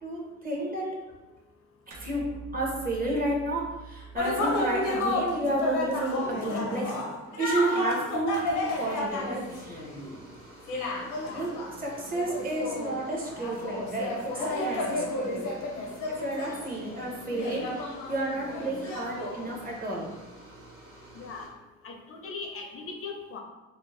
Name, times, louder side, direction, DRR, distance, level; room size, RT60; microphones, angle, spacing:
voice 1, 0.0-1.0 2.0-2.3 2.5-6.9 7.4-9.8 11.3-11.5 11.8-15.5 16.1-20.1, right 1 dB, 30° right, -2 dB, 0.8 m, -31 dB
sound 1, 1.9-6.6, right 4 dB, 75° right, 0.6 m, -47 dB
sound 2, 4.2-10.2 10.7-19.6, left 2 dB, 90° left, 0.6 m, -32 dB
sound 3, 8.8-21.5, right 1 dB, 45° right, 1.2 m, -50 dB
voice 2, 11.1-11.5 21.1-21.4 21.8-23.4, left 4 dB, 50° left, 2 dB, 0.4 m, -39 dB
2.6 x 2.0 x 3.0 m, 1.1 s
cardioid pair, 90°, 30 cm